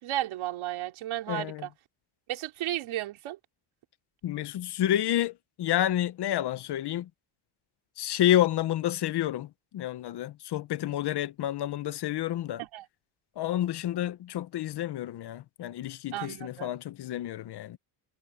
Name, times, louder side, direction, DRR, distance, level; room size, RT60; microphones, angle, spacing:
voice 1, 0.0-1.7 2.3-3.4 12.6-12.8 16.1-16.7, right 14 dB, 75° right, 3.5 m, -33 dB
voice 2, 1.3-1.7 4.2-7.1 8.0-12.6 13.4-17.8, left 12 dB, 55° left, 1.0 m, -29 dB
cardioid pair, 130°, 49 cm